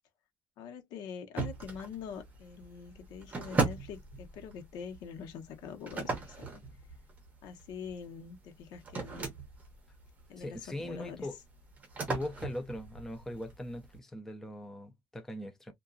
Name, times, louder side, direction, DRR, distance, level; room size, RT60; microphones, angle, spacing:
voice 1, 0.6-6.3 6.5-6.6 7.4-9.3 10.3-11.3, left 7 dB, 80° left, 0.8 m, -44 dB
sound 1, 1.4-14.0, right 3 dB, 20° right, 0.8 m, -39 dB
voice 2, 10.4-11.4 12.1-15.7, left 1 dB, 5° left, 0.4 m, -40 dB
2.8 x 2.3 x 2.4 m
cardioid pair, 170°, 7 cm